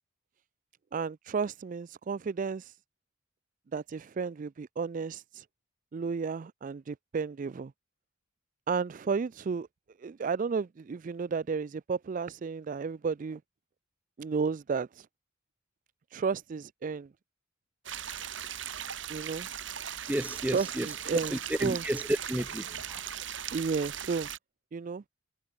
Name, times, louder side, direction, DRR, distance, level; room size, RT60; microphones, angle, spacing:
voice 1, 0.9-2.7 3.7-5.5 5.9-7.7 8.7-9.7 10.0-13.4 14.2-15.1 16.1-17.1 19.1-19.5 20.5-21.8 23.5-24.3 24.7-25.0, right 5 dB, 40° right, 0.4 m, -33 dB
sound 1, 17.9-24.4, right 9 dB, 65° right, 3.1 m, -38 dB
voice 2, 20.1-20.9 21.3-22.0 22.3-23.0, right 1 dB, 10° right, 0.9 m, -32 dB
head